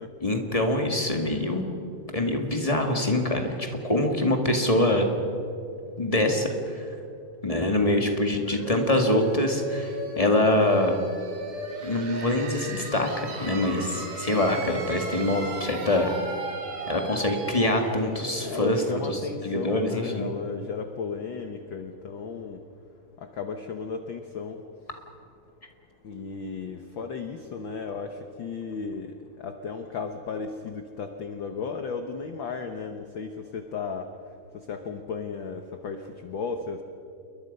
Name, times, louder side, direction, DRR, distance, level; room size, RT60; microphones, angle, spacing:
voice 1, 0.2-1.7 2.1-5.1 6.0-6.5 6.7-6.8 7.4-11.0 11.8-16.1 16.9-20.3, left 1 dB, 15° left, 3 dB, 1.3 m, -24 dB
sound 1, 8.4-20.0, right 2 dB, 75° right, 4.3 m, -37 dB
voice 2, 18.4-22.6 23.4-24.6 26.0-29.1 29.4-34.1 34.7-36.8, left 5 dB, 70° left, 6 dB, 1.1 m, -34 dB
28.5 x 22.5 x 5.5 m, 2.7 s
omnidirectional pair, 3.7 m